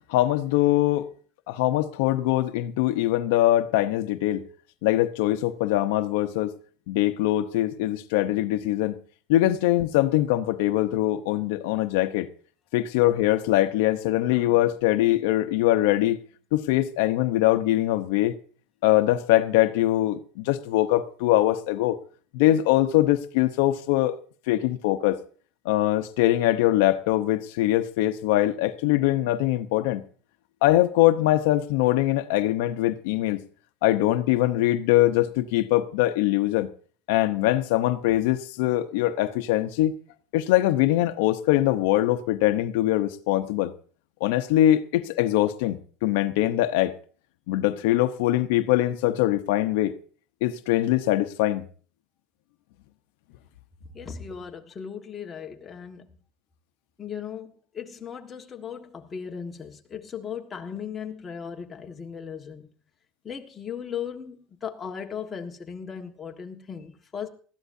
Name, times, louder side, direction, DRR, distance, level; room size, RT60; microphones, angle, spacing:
voice 1, 0.1-1.1 1.5-4.4 4.8-6.5 6.9-8.9 9.3-12.3 12.7-16.2 16.5-18.3 18.8-22.0 22.3-24.2 24.5-25.2 25.6-30.0 30.6-33.4 33.8-36.7 37.1-39.9 40.3-43.7 44.2-46.9 47.5-49.9 50.4-51.6, left 14 dB, 80° left, 0.8 m, -22 dB
voice 2, 53.9-56.1 57.0-62.7 63.2-67.3, left 7 dB, 20° left, 1.6 m, -37 dB
20.0 x 14.0 x 2.7 m
cardioid pair, 155°, 0 cm